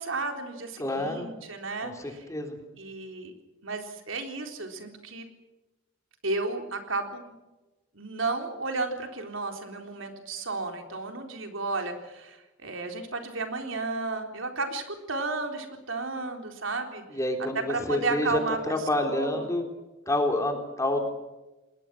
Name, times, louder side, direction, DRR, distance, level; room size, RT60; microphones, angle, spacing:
voice 1, 0.0-2.3 2.8-3.3 3.6-5.3 6.2-7.4 7.9-17.0 17.5-19.5, right 3 dB, 75° right, 4 dB, 3.9 m, -33 dB
voice 2, 0.8-1.3 1.8-2.6 17.1-18.4 18.7-19.6 20.1-21.1, left 1 dB, 15° left, 4 dB, 3.6 m, -28 dB
28.5 x 20.5 x 6.2 m, 1.1 s
head